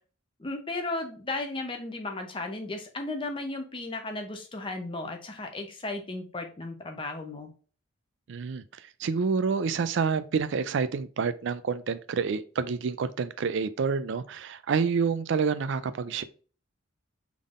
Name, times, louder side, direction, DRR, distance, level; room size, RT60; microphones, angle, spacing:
voice 1, 0.4-7.5, left 2 dB, 25° left, 0.6 m, -35 dB
voice 2, 8.3-16.2, right 5 dB, 55° right, 0.3 m, -28 dB
3.8 x 3.5 x 2.4 m
head